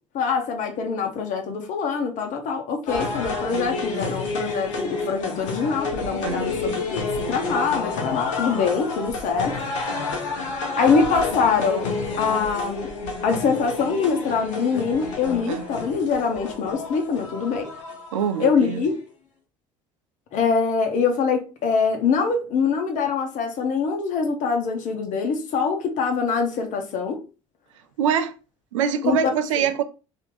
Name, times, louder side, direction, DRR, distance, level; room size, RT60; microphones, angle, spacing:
voice 1, 0.1-9.6 10.8-12.9 13.2-17.7 18.4-19.0 20.3-27.2 29.0-29.6, left 5 dB, 55° left, 1.0 m, -24 dB
sound 1, 2.9-18.9, left 3 dB, 80° left, 0.8 m, -30 dB
voice 2, 6.2-6.5 15.5-15.6 18.1-18.8 28.0-28.3 28.7-29.8, right 7 dB, 80° right, 0.4 m, -24 dB
2.9 x 2.7 x 3.7 m
hypercardioid pair, 65°, 16 cm